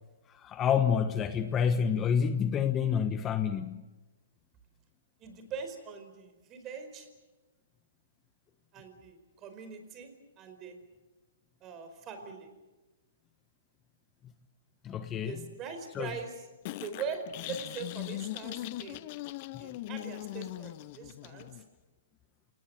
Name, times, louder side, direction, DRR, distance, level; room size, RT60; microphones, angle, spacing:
voice 1, 0.3-3.8 14.8-15.4 15.9-16.2, left 7 dB, 20° left, 10 dB, 1.2 m, -28 dB
voice 2, 5.2-7.1 8.7-10.1 10.4-10.8 11.6-12.5 15.2-16.4 16.8-19.1 19.6-21.5, right 6 dB, 25° right, 7 dB, 4.8 m, -42 dB
sound 1, 16.7-21.6, left 17 dB, 40° left, 0.7 m, -40 dB
28.0 x 18.5 x 7.8 m, 1.1 s
hypercardioid pair, 130°, 0 cm